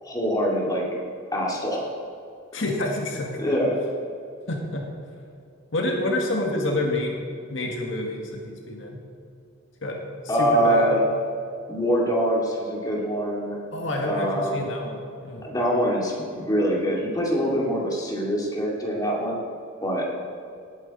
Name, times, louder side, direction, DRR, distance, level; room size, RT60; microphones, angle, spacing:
voice 1, 0.0-0.8 1.3-1.8 3.4-3.8 10.3-11.0 11.7-13.6 14.0-14.6 15.4-19.4 19.8-20.0, equal, 20° left, -3 dB, 2.7 m, -24 dB
voice 2, 2.5-3.6 4.5-4.8 5.7-9.0 9.8-10.0 10.4-10.9 13.7-15.0 15.2-15.4, left 1 dB, 70° left, 0 dB, 2.0 m, -28 dB
18.0 x 9.3 x 4.4 m, 2.4 s
head